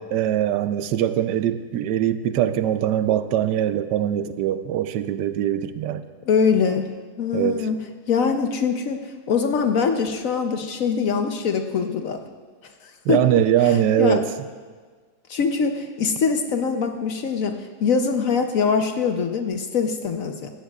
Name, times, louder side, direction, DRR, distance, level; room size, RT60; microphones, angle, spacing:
voice 1, 0.0-6.0 7.3-7.7 13.1-14.3, right 11 dB, 80° right, 1.1 m, -22 dB
voice 2, 6.3-6.9 7.2-7.8 8.1-9.0 9.3-12.2 12.8-13.2 13.6-14.2 15.3-20.5, left 5 dB, 60° left, 1.0 m, -23 dB
16.5 x 14.5 x 2.4 m
omnidirectional pair, 1.9 m